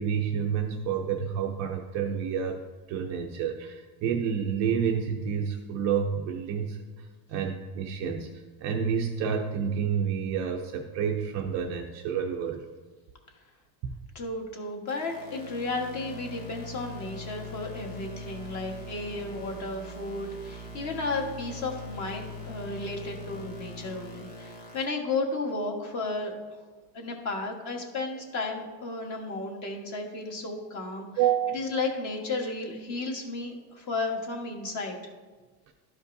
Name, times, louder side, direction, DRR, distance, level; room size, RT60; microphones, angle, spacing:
voice 1, 0.0-2.6 2.9-6.8 7.3-8.3 8.6-12.6 31.2-31.6, right 7 dB, 35° right, 2 dB, 0.4 m, -29 dB
voice 2, 14.1-26.3 26.9-31.1 31.5-35.0, left 3 dB, 35° left, 1 dB, 1.3 m, -33 dB
sound 1, 14.9-24.8, left 2 dB, 85° left, 2.0 m, -42 dB
12.5 x 5.1 x 2.6 m, 1.4 s
cardioid pair, 155°, 49 cm